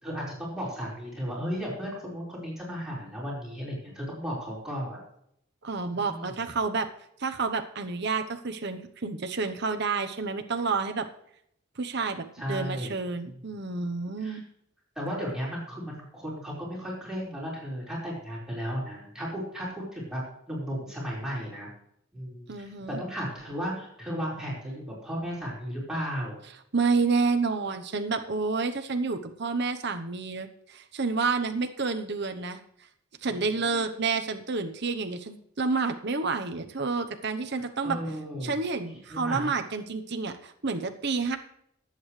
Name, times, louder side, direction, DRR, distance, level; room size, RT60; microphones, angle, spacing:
voice 1, 0.0-5.0 5.9-6.4 12.3-13.0 14.2-14.4 14.9-20.2 20.5-21.7 22.1-26.4 37.8-38.6 39.1-39.5, equal, 5° right, -6 dB, 4.9 m, -34 dB
voice 2, 5.6-6.9 7.2-11.1 11.8-14.4 22.5-23.0 26.7-32.6 33.2-38.0 38.4-41.4, right 4 dB, 50° right, 6 dB, 1.0 m, -29 dB
20.0 x 8.6 x 3.3 m, 0.71 s
head